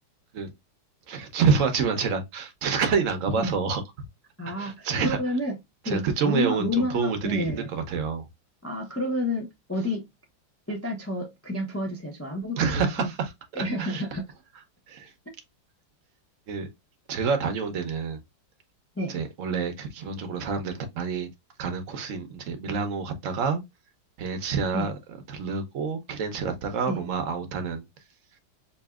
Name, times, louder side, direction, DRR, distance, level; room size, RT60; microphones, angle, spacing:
voice 1, 1.1-3.8 4.5-5.2 5.8-8.2 12.6-14.0 14.9-15.1 16.5-16.7 17.1-18.2 19.1-21.3 21.6-23.6 24.2-24.9 25.3-27.8, right 5 dB, 60° right, 0.9 m, -28 dB
voice 2, 4.4-5.5 5.8-7.7 8.6-10.1 10.7-13.1 13.5-14.2 19.0-19.2 24.7-24.9 26.9-27.0, left 1 dB, 20° left, 0.3 m, -29 dB
5.1 x 2.8 x 2.3 m
omnidirectional pair, 2.0 m